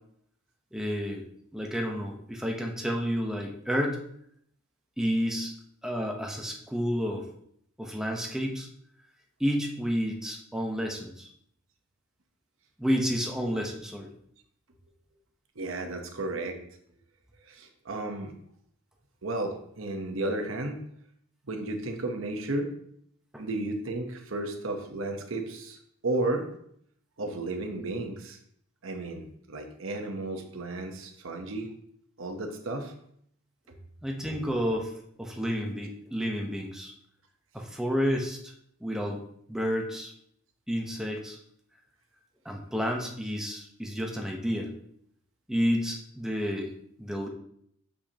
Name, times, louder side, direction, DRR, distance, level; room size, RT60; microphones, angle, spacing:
voice 1, 0.7-1.2 1.5-4.0 5.0-5.5 5.8-7.3 7.8-8.7 9.4-11.3 12.8-14.1 23.3-23.4 34.0-34.9 35.2-36.9 37.5-38.5 38.8-39.2 39.5-40.1 40.7-41.4 42.4-44.7 45.5-46.7 47.0-47.3, equal, 5° right, 0 dB, 0.9 m, -30 dB
voice 2, 15.6-16.6 17.5-18.3 19.2-20.8 21.5-22.7 23.4-25.8 26.0-26.5 27.2-28.4 28.8-31.7 32.2-32.9 33.7-33.8, right 2 dB, 65° right, 5 dB, 1.0 m, -33 dB
6.7 x 5.5 x 2.9 m, 0.69 s
head